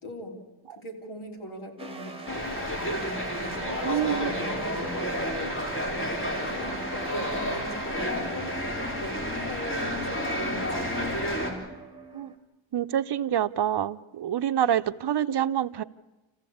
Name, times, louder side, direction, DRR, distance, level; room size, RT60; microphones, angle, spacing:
voice 1, 0.0-0.4 0.8-2.9 3.4-8.5 9.0-11.1, left 1 dB, 85° left, 1 dB, 3.6 m, -40 dB
sound 1, 1.8-12.4, right 4 dB, 10° right, 2.0 m, -41 dB
sound 2, 2.3-11.5, equal, 25° left, 3.6 m, -31 dB
voice 2, 3.8-4.3 12.1-12.3 12.7-15.8, right 10 dB, 55° right, 12 dB, 0.7 m, -27 dB
28.5 x 15.0 x 8.5 m, 1.1 s
wide cardioid pair, 120°, 47 cm